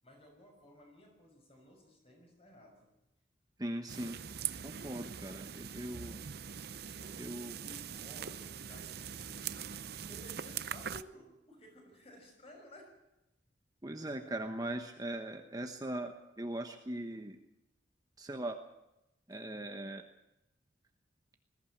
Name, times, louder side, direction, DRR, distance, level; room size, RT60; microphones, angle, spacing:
voice 1, 0.0-2.9 6.9-9.6 10.0-13.0 14.0-14.5, equal, 30° left, 2 dB, 6.3 m, -56 dB
voice 2, 3.6-4.2 4.6-6.2 7.2-7.5 13.8-17.4 18.2-18.6 19.3-20.0, right 1 dB, 20° right, 5 dB, 1.1 m, -40 dB
sound 1, 3.9-11.0, right 8 dB, 55° right, 0.7 m, -42 dB
20.5 x 15.0 x 8.7 m, 0.90 s
head